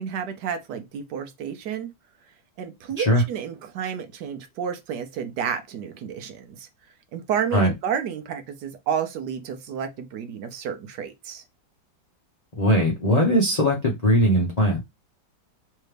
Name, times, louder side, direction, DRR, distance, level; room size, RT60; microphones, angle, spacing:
voice 1, 0.0-1.9 2.6-6.7 7.1-11.4, right 8 dB, 70° right, 1.2 m, -31 dB
voice 2, 12.6-14.8, equal, 35° left, 0.6 m, -20 dB
3.4 x 3.2 x 3.2 m
omnidirectional pair, 2.0 m